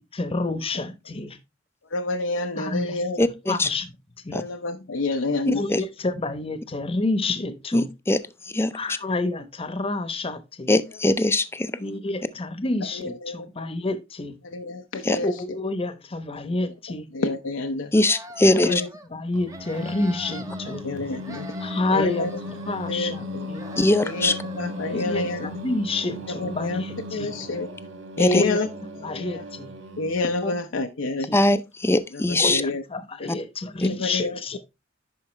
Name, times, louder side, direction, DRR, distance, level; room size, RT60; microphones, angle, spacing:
voice 1, 0.1-1.4 2.6-3.0 3.5-3.9 4.2-4.4 5.5-7.9 8.7-10.7 11.7-14.4 15.2-17.1 18.4-18.8 19.1-20.9 21.6-23.7 24.8-27.3 28.2-28.6 29.0-29.7 30.4-30.5 31.0-31.4 32.4-34.6, left 2 dB, 30° left, 0.8 m, -29 dB
voice 2, 1.9-3.2 4.3-5.6 13.0-13.5 14.5-15.3 17.1-17.9 18.7-18.9 20.7-21.5 21.9-22.3 22.9-23.5 24.0-25.5 26.4-26.8 27.1-27.7 28.2-28.7 29.0-29.4 30.0-31.3 32.3-32.8 33.2-33.3 34.0-34.4, left 3 dB, 90° left, 0.7 m, -28 dB
voice 3, 3.2-3.7 4.3-4.4 5.5-5.8 7.7-8.2 8.5-8.8 10.7-11.7 15.0-15.2 17.9-18.8 23.8-24.4 28.2-28.4 31.3-32.6, left 2 dB, 15° left, 0.4 m, -21 dB
sound 1, 17.9-19.1 19.4-20.8 21.1-23.3 23.5-25.5, right 1 dB, 15° right, 0.7 m, -43 dB
Singing, 19.3-30.5, left 1 dB, 80° right, 1.1 m, -36 dB
10.5 x 4.7 x 3.2 m
head